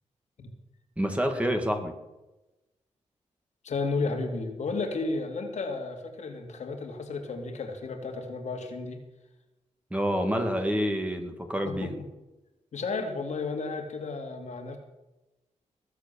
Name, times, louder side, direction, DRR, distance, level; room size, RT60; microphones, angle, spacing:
voice 1, 1.0-1.9 9.9-11.9, equal, 10° right, 5 dB, 2.0 m, -28 dB
voice 2, 3.6-9.0 11.6-11.9 12.7-14.8, left 3 dB, 65° left, 3 dB, 2.6 m, -33 dB
20.0 x 7.5 x 7.0 m, 1.0 s
cardioid pair, 95°, 13 cm